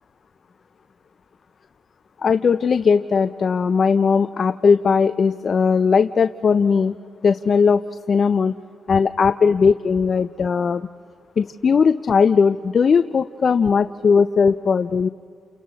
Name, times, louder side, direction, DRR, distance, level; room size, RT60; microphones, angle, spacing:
voice 1, 2.2-7.0 7.2-8.5 8.9-10.9 11.4-15.1, left 5 dB, 50° left, 11 dB, 0.5 m, -18 dB
29.5 x 28.5 x 4.1 m, 2.4 s
cardioid pair, 80°, 0 cm